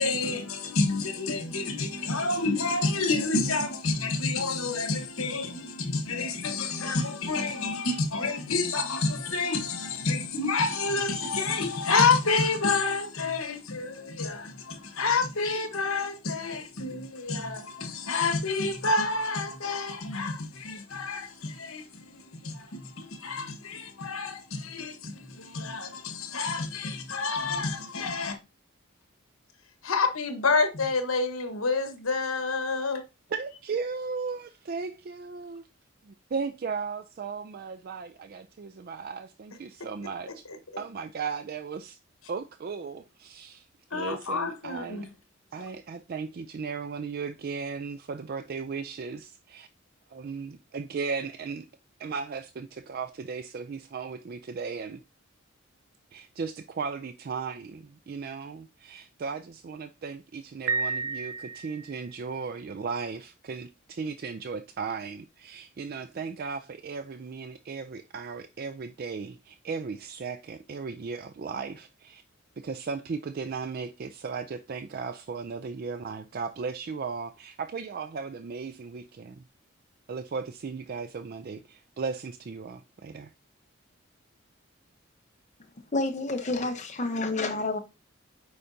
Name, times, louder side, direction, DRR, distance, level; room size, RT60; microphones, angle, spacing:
voice 1, 0.0-28.4 29.8-33.0 40.3-40.8 43.9-45.1, left 3 dB, 80° left, 1.2 m, -29 dB
voice 2, 33.3-35.6 36.0-40.5 40.8-42.0 42.3-43.7 43.9-45.1 45.5-49.7 50.1-51.7 52.0-55.0 56.1-72.2 72.6-79.4 80.1-83.3, right 5 dB, 45° right, 0.3 m, -36 dB
Piano, 60.7-62.1, right 4 dB, 90° right, 0.6 m, -31 dB
voice 3, 85.9-87.8, left 2 dB, 35° left, 0.9 m, -29 dB
8.6 x 5.0 x 2.7 m
head